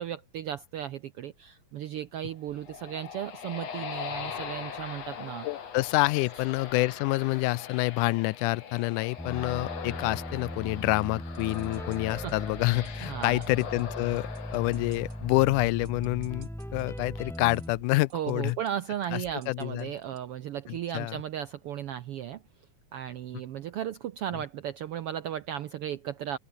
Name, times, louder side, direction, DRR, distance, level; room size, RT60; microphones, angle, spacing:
voice 1, 0.0-5.5 12.1-12.4 13.0-13.4 18.1-22.4 22.9-26.4, right 10 dB, 75° right, 1.3 m, -35 dB
sound 1, 2.3-15.9, left 7 dB, 55° left, 3.5 m, -41 dB
voice 2, 5.4-18.6 19.1-19.2 19.5-19.9 20.7-21.2, left 21 dB, 85° left, 2.0 m, -27 dB
sound 2, 9.2-17.7, equal, ahead, 0.7 m, -39 dB
sound 3, 11.0-20.2, right 9 dB, 55° right, 1.3 m, -52 dB
open air
omnidirectional pair, 3.6 m